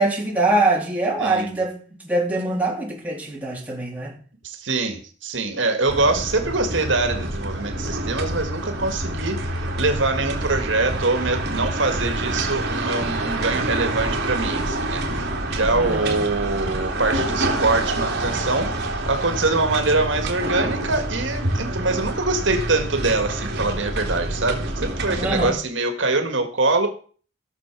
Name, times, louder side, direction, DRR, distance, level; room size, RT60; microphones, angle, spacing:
voice 1, 0.0-4.1 15.7-16.2 25.1-25.6, right 2 dB, 10° right, 3.2 m, -23 dB
voice 2, 1.2-1.6 4.4-18.7 19.1-26.9, right 3 dB, 70° right, 2.0 m, -24 dB
sound 1, 5.9-25.5, right 1 dB, 55° right, 2.8 m, -27 dB
15.5 x 6.9 x 6.2 m
head